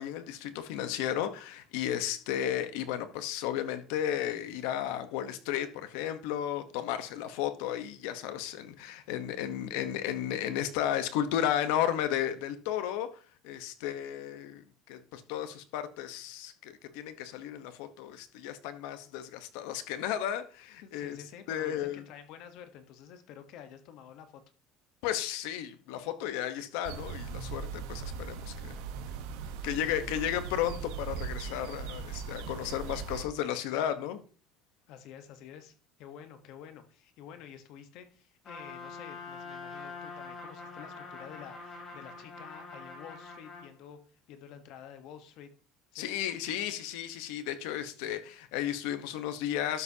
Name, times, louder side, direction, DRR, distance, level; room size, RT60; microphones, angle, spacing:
voice 1, 0.0-21.2 21.5-22.0 25.0-28.7 29.6-34.2 45.9-49.8, left 11 dB, 85° left, 1.1 m, -34 dB
voice 2, 20.8-24.4 29.1-29.3 29.7-30.6 34.9-45.5 45.9-46.1, left 9 dB, 60° left, 1.1 m, -50 dB
sound 1, 26.8-33.3, right 6 dB, 85° right, 1.1 m, -39 dB
Trumpet, 38.4-43.7, left 4 dB, 25° left, 3.4 m, -44 dB
12.0 x 6.8 x 2.8 m
cardioid pair, 160°, 0 cm